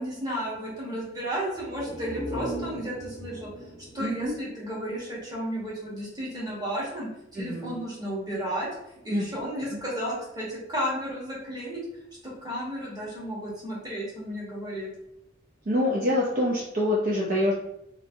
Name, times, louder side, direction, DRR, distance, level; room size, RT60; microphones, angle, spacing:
voice 1, 0.0-3.5 3.9-8.7 9.0-11.8 12.2-14.9, equal, 20° right, -6 dB, 1.0 m, -33 dB
sound 1, 1.5-5.3 5.6-5.7, right 1 dB, 30° left, 0.5 m, -38 dB
voice 2, 4.0-4.3 7.4-7.8 9.1-9.3 9.7-9.8 15.7-17.5, left 1 dB, 45° right, -4 dB, 0.4 m, -26 dB
3.0 x 2.6 x 2.5 m, 0.83 s
head